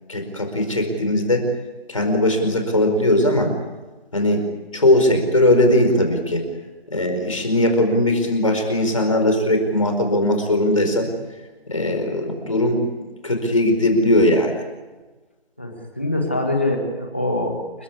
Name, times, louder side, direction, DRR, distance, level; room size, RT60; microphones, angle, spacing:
voice 1, 0.1-1.5 1.9-3.5 4.1-4.4 4.7-6.4 6.9-11.1 11.7-12.8 13.2-14.6, left 1 dB, 35° left, 4 dB, 4.8 m, -19 dB
voice 2, 15.6-17.8, left 1 dB, 10° left, 2 dB, 1.8 m, -24 dB
29.0 x 16.0 x 9.8 m, 1.2 s
figure-of-eight pair, 180°, 31 cm